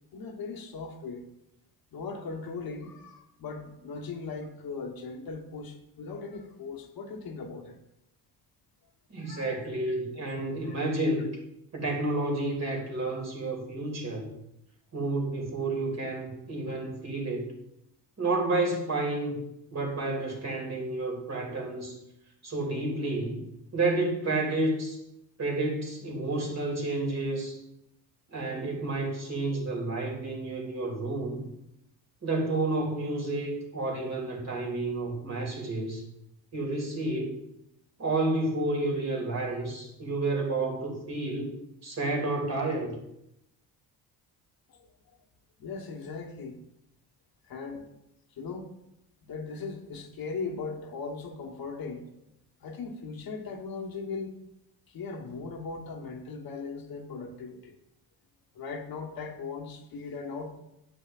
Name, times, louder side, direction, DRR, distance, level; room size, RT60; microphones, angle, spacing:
voice 1, 0.1-1.3 1.9-7.8 9.2-9.9 44.7-45.2 45.6-46.6 47.4-47.9 48.3-48.7 49.2-52.2 52.6-54.4 54.9-57.8 58.5-60.6, left 4 dB, 55° left, 2 dB, 1.2 m, -39 dB
voice 2, 9.1-11.2 11.7-14.3 14.9-17.4 18.2-19.4 19.7-22.0 22.4-23.4 23.7-25.0 25.4-27.6 28.3-31.4 32.2-36.0 36.5-37.4 38.0-41.6 41.8-43.0, right 2 dB, 40° right, -1 dB, 2.5 m, -30 dB
8.8 x 6.7 x 2.4 m, 0.84 s
cardioid pair, 85°, 42 cm